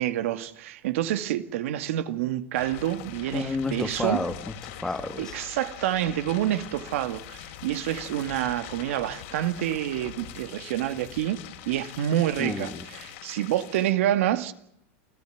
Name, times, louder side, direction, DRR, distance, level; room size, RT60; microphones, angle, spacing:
voice 1, 0.0-4.2 5.2-14.5, right 12 dB, 75° right, 2.1 m, -28 dB
sound 1, 2.5-13.9, left 12 dB, 65° left, 4.5 m, -43 dB
voice 2, 3.3-5.3 12.4-12.9, left 3 dB, 10° left, 1.9 m, -31 dB
28.5 x 15.0 x 9.3 m
supercardioid pair, 140°, 7 cm